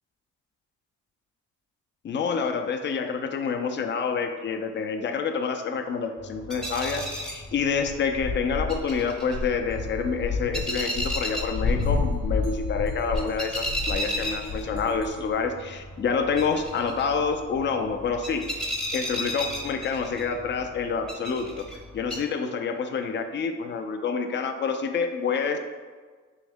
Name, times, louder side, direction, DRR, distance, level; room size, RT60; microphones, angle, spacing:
voice 1, 2.0-21.7 21.9-25.6, left 5 dB, 40° left, 6 dB, 0.4 m, -28 dB
sound 1, 6.2-22.2, equal, ahead, 0.7 m, -35 dB
sound 2, 7.8-15.3, left 4 dB, 75° left, 0.8 m, -30 dB
3.5 x 3.1 x 3.5 m, 1.5 s
cardioid pair, 90°, 30 cm